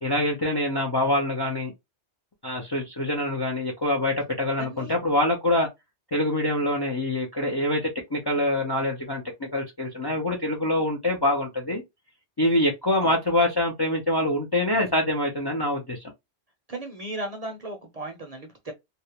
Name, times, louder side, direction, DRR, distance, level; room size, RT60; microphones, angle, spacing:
voice 1, 0.0-1.7 2.4-5.7 6.1-11.8 12.4-16.1, left 1 dB, 35° left, 0.4 m, -25 dB
voice 2, 4.6-4.9 13.0-13.2 16.7-18.7, right 1 dB, 45° right, 0.6 m, -35 dB
2.4 x 2.0 x 2.8 m
omnidirectional pair, 1.1 m